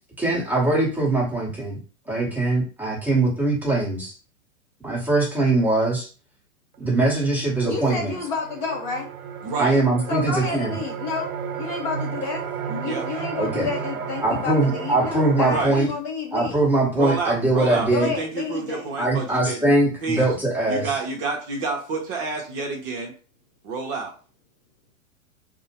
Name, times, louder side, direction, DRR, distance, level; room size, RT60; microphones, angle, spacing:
voice 1, 0.2-1.8 2.1-4.1 4.8-6.1 6.8-8.1 9.6-10.7 13.4-13.7 14.2-15.9 16.3-18.1 19.0-20.9, right 2 dB, 5° right, -5 dB, 1.0 m, -22 dB
sound 1, 6.7-6.8 7.2-15.7, right 7 dB, 80° right, 0.6 m, -33 dB
voice 2, 7.7-9.1 10.1-11.3 11.5-12.4 12.8-16.7 17.9-19.0, left 4 dB, 35° left, 0 dB, 0.6 m, -30 dB
voice 3, 9.4-9.8 12.7-13.1 15.4-15.8 17.0-19.7 20.0-20.3 20.7-23.1 23.6-24.1, right 3 dB, 40° right, 1 dB, 0.8 m, -28 dB
2.5 x 2.1 x 2.8 m, 0.37 s
hypercardioid pair, 115°, 43 cm